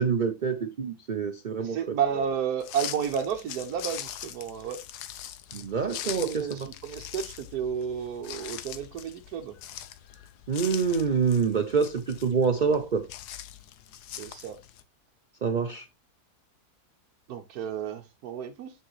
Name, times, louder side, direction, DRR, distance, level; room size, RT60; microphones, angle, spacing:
voice 1, 0.0-2.0 5.5-6.5 10.5-13.1 15.4-15.8, right 5 dB, 90° right, 0.4 m, -26 dB
voice 2, 1.6-4.8 6.2-9.5 14.1-14.6 17.3-18.7, right 8 dB, 70° right, 1.3 m, -32 dB
sound 1, 2.6-14.8, left 11 dB, 75° left, 1.2 m, -42 dB
6.7 x 6.3 x 3.1 m
omnidirectional pair, 1.7 m